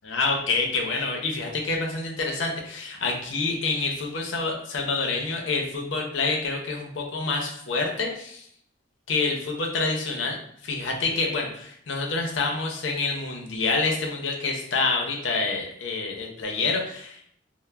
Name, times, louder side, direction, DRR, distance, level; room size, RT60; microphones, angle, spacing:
voice 1, 0.1-8.5 9.1-10.4 10.6-17.3, left 3 dB, 85° left, 1 dB, 0.6 m, -27 dB
3.1 x 2.0 x 2.2 m, 0.67 s
head